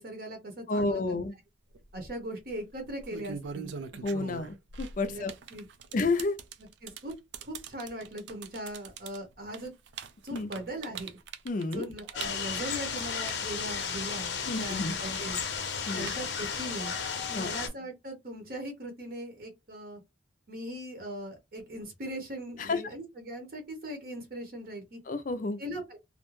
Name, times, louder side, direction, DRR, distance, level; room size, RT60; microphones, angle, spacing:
voice 1, 0.0-1.2 1.9-3.7 5.1-5.2 5.5-5.6 5.9-6.0 6.8-7.1 7.4-9.7 10.2-11.2 11.7-15.4 15.9-16.9 17.3-20.0 20.5-25.0 25.6-26.0, right 1 dB, 55° right, 0.7 m, -39 dB
voice 2, 0.7-1.3 4.0-5.3 5.9-6.4 10.3-10.5 11.5-11.8 14.5-14.9 15.9-16.1 17.4-17.5 22.6-22.8 25.1-25.6, left 3 dB, 45° left, 0.4 m, -30 dB
sound 1, 1.7-2.1 2.8-14.2 14.5-16.6, right 6 dB, 80° right, 0.4 m, -42 dB
sound 2, 12.1-17.7, left 6 dB, 80° left, 0.7 m, -34 dB
2.4 x 2.1 x 3.0 m
head